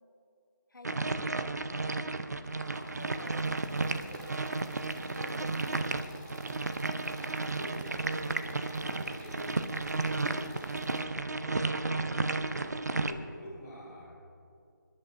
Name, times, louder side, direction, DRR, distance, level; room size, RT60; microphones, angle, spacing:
voice 1, 0.7-2.3 2.9-5.8, left 2 dB, 75° left, 5 dB, 1.2 m, -50 dB
sound 1, 0.8-13.1, right 3 dB, 55° right, 0.6 m, -33 dB
Sink (filling or washing), 2.1-7.0 7.3-7.4 8.5-8.6 8.9-9.0, right 1 dB, 85° right, 2.2 m, -55 dB
sound 2, 2.5-11.0, equal, 10° right, 0.7 m, -50 dB
voice 2, 7.5-10.6 10.9-14.2, equal, 5° left, -11 dB, 1.3 m, -47 dB
28.0 x 10.5 x 2.5 m, 2.5 s
figure-of-eight pair, 175°, 11 cm